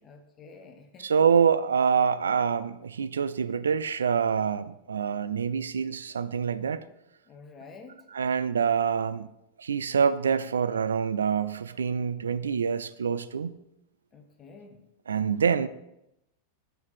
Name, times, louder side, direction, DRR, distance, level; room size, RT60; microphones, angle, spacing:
voice 1, 0.0-1.2 7.2-8.1 14.1-14.8, left 4 dB, 25° left, 6 dB, 0.7 m, -49 dB
voice 2, 1.0-6.8 8.1-9.3 9.6-13.5 15.1-15.7, right 6 dB, 70° right, 14 dB, 0.3 m, -26 dB
5.0 x 4.8 x 6.0 m, 0.86 s
figure-of-eight pair, 90°, 0 cm